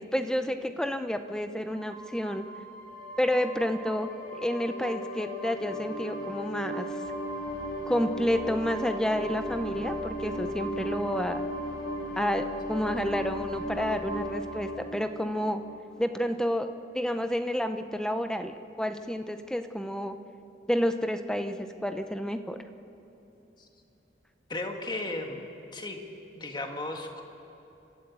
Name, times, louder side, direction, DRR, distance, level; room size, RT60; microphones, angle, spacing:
voice 1, 0.0-2.5 3.2-6.9 7.9-11.4 12.2-15.6 16.0-16.7 16.9-20.2 20.7-22.6, equal, 5° left, 8 dB, 0.7 m, -30 dB
sound 1, 1.7-16.1, equal, 50° left, 6.4 m, -36 dB
voice 2, 24.5-25.5 25.7-26.0 26.4-27.2, left 2 dB, 25° left, 3 dB, 1.8 m, -35 dB
29.5 x 13.0 x 8.3 m, 3.0 s
head